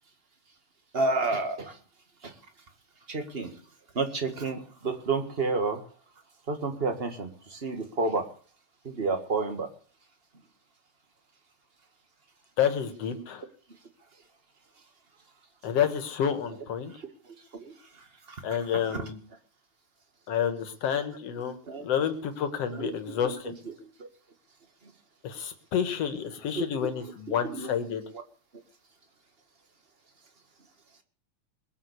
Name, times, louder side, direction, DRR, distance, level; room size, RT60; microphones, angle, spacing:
voice 1, 0.9-1.7 2.2-2.3 3.1-3.5 3.9-5.8 6.5-8.3 8.8-9.7 17.6-17.7 18.3-18.4 18.8-19.0 21.7-21.8 22.7-23.7 26.5-27.7 28.1-28.2, right 3 dB, 25° right, 6 dB, 1.7 m, -30 dB
voice 2, 12.6-13.4 15.6-16.9 18.4-19.2 20.3-23.5 25.2-28.0, left 8 dB, 60° left, 8 dB, 2.7 m, -29 dB
21.5 x 7.5 x 8.3 m, 0.43 s
omnidirectional pair, 3.3 m